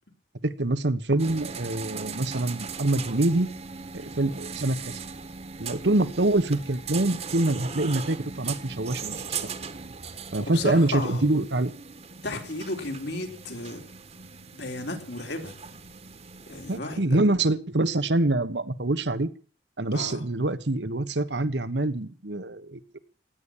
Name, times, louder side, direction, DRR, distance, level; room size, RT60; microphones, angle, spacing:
voice 1, 0.4-3.5 3.9-5.0 5.6-9.5 10.3-11.7 16.7-19.3 19.8-23.0, right 2 dB, 80° right, 12 dB, 1.3 m, -25 dB
sound 1, 1.2-16.8, right 5 dB, 40° right, 1.4 m, -39 dB
voice 2, 10.4-11.2 12.2-13.8 14.5-15.6 16.5-17.3 19.9-20.3, left 2 dB, 70° left, 4 dB, 3.8 m, -34 dB
17.0 x 10.0 x 7.3 m, 0.41 s
head